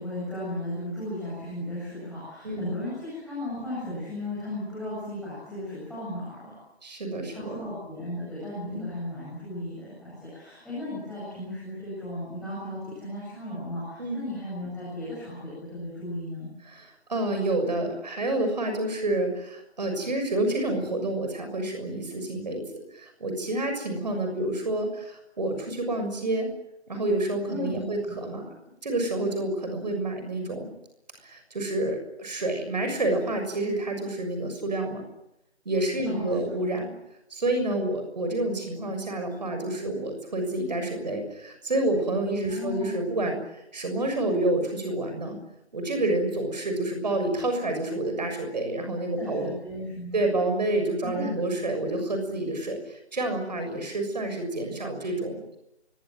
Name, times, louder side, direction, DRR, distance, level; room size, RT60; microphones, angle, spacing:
voice 1, 0.0-6.5 7.3-16.5 27.5-28.2 36.0-36.6 42.5-42.9 49.2-50.2 51.0-51.2, left 1 dB, ahead, -11 dB, 8.0 m, -35 dB
voice 2, 6.8-7.6 8.7-8.9 14.0-14.2 16.7-22.6 22.9-26.5 26.9-28.5 28.8-30.7 31.2-35.0 35.6-36.9 37.3-45.4 45.7-49.5 50.1-55.6, right 2 dB, 40° right, 5 dB, 6.8 m, -28 dB
27.5 x 23.5 x 7.8 m, 0.87 s
figure-of-eight pair, 160°, 33 cm